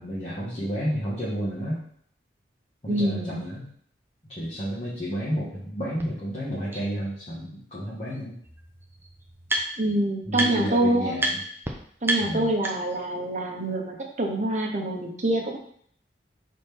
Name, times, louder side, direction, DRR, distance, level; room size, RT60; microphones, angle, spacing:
voice 1, 0.0-1.8 2.8-3.7 4.3-8.3 10.2-11.4 12.2-12.5, equal, 35° left, -9 dB, 1.6 m, -31 dB
voice 2, 2.9-3.4 9.8-11.2 12.0-15.6, right 1 dB, 40° right, 1 dB, 1.0 m, -26 dB
sound 1, 6.0-6.1 6.7-6.8 8.1-8.2 8.4-10.0 10.3-10.8 11.2-11.3 11.6-11.7 12.0-13.1, right 2 dB, 15° right, 0.7 m, -29 dB
6.3 x 4.2 x 3.6 m, 0.62 s
head